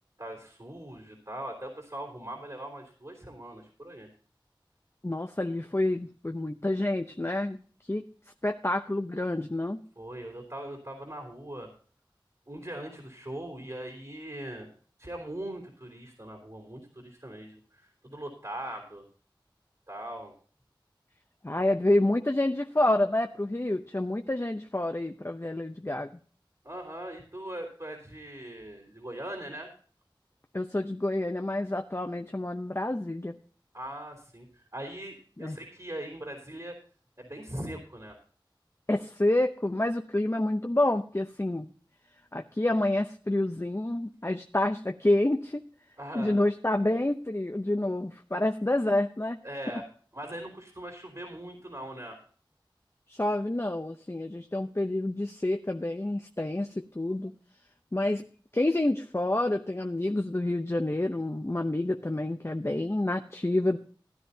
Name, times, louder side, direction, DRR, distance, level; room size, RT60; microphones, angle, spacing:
voice 1, 0.2-4.1 10.0-11.7 12.5-14.7 15.0-19.0 19.9-20.3 26.6-29.7 33.7-36.8 37.2-38.2 46.0-46.4 49.4-49.8 50.1-52.2, right 1 dB, 50° right, 0 dB, 3.5 m, -40 dB
voice 2, 5.0-7.6 7.9-8.0 8.4-9.8 21.4-26.1 30.5-33.4 35.4-35.6 38.9-41.7 42.3-45.6 46.1-49.4 53.1-57.3 57.9-58.2 58.5-63.8, left 1 dB, 30° left, 5 dB, 0.7 m, -28 dB
16.0 x 11.0 x 2.7 m, 0.43 s
wide cardioid pair, 40°, 9 cm